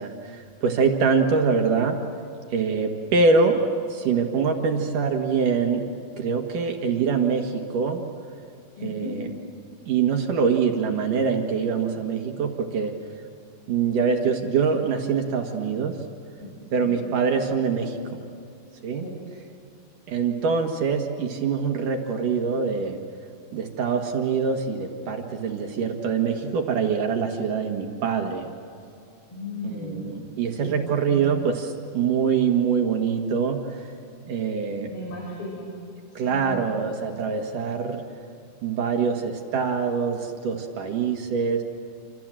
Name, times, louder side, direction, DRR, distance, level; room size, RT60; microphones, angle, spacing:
voice 1, 0.0-2.0 2.5-3.6 3.9-5.8 6.2-8.0 8.8-9.3 9.9-12.9 13.7-15.9 16.7-18.2 18.8-19.1 20.1-23.0 23.5-28.5 29.6-33.6 34.3-34.9 36.2-38.0 38.6-41.6, right 5 dB, 65° right, 3 dB, 3.1 m, -24 dB
voice 2, 8.8-9.2 16.4-16.5 16.8-17.0 19.0-19.1 29.3-30.3 30.6-30.7 31.1-31.3 34.9-35.7 36.3-36.6, left 2 dB, 35° left, -2 dB, 5.7 m, -35 dB
28.5 x 27.5 x 7.6 m, 2.6 s
omnidirectional pair, 4.2 m